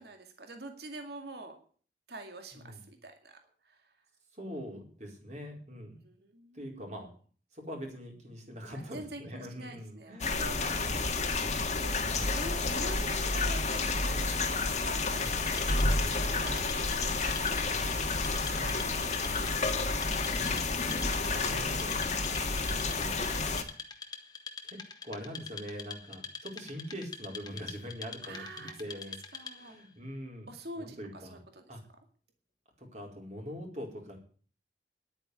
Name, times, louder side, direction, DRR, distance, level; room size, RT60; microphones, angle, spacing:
voice 1, 0.0-1.6 2.1-3.4 3.6-3.9 6.0-7.0 8.7-11.9 12.3-17.5 18.3-19.2 28.2-28.8 29.3-29.8 30.5-31.6, right 2 dB, 60° right, 5 dB, 2.3 m, -46 dB
voice 2, 4.3-6.0 6.5-7.1 7.5-10.5 10.8-12.4 14.0-14.3 15.2-15.4 18.5-18.9 21.3-22.0 22.5-23.5 24.6-30.5 30.8-31.4 31.7-31.8 32.8-34.2, equal, 40° right, 1 dB, 4.5 m, -43 dB
sound 1, 10.2-23.6, left 3 dB, 40° left, 1.8 m, -30 dB
Wood, 15.3-29.8, left 5 dB, 20° left, 1.4 m, -45 dB
11.0 x 8.9 x 9.7 m, 0.44 s
head